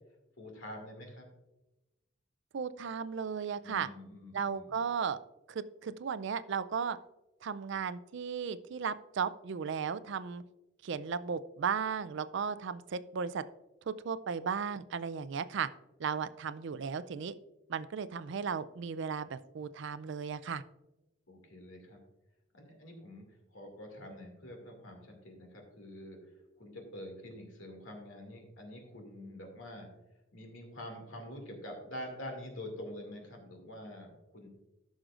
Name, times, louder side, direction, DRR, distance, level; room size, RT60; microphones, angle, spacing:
voice 1, 0.4-1.3 3.6-4.8 21.3-22.0 22.5-23.2 23.5-26.2 26.6-29.9 30.3-34.5, left 1 dB, 80° left, 2 dB, 2.3 m, -46 dB
voice 2, 2.5-3.9 4.3-5.2 5.5-7.0 7.4-10.4 10.8-13.4 13.9-15.7 16.0-17.3 17.7-20.6, right 6 dB, 65° right, 15 dB, 0.4 m, -35 dB
14.5 x 6.3 x 2.5 m, 0.98 s
head